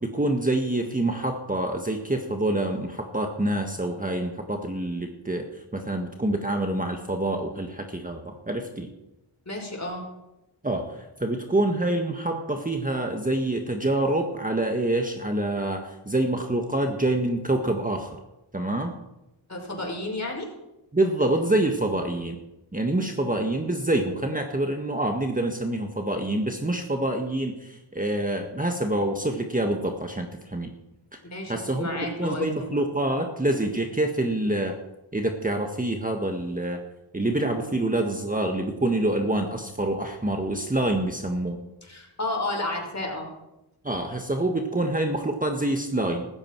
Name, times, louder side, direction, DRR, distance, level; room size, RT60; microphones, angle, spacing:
voice 1, 0.0-5.5 5.7-8.9 10.6-18.2 18.5-18.9 20.9-22.4 22.7-30.7 31.5-31.9 32.2-34.8 35.1-36.8 37.1-41.6 43.8-46.3, right 1 dB, 15° right, 4 dB, 1.6 m, -26 dB
voice 2, 9.5-10.0 19.5-20.5 31.2-32.7 41.8-43.3, left 2 dB, 30° left, 1 dB, 5.6 m, -32 dB
15.5 x 14.5 x 4.7 m, 0.94 s
cardioid pair, 55°, 50 cm